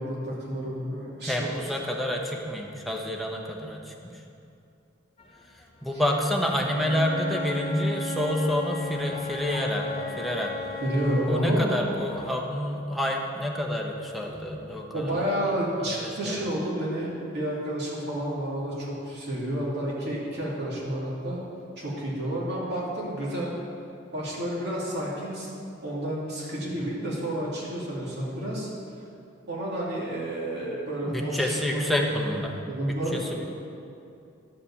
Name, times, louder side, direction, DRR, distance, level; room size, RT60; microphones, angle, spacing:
voice 1, 0.0-1.5 5.9-6.0 10.8-11.9 14.9-21.4 21.8-23.6 24.1-25.5 25.8-28.7 29.5-31.8 32.3-33.4, right 1 dB, 55° right, -6 dB, 2.5 m, -30 dB
voice 2, 1.2-4.1 5.8-10.6 11.3-15.1 16.0-16.4 31.1-32.6 33.1-33.4, left 1 dB, ahead, -1 dB, 0.9 m, -28 dB
sound 1, 5.2-12.3, left 3 dB, 30° left, 0.7 m, -45 dB
Wind instrument woodwind instrument, 6.5-11.4, left 3 dB, 50° left, 1.1 m, -36 dB
11.0 x 4.9 x 7.1 m, 2.6 s
head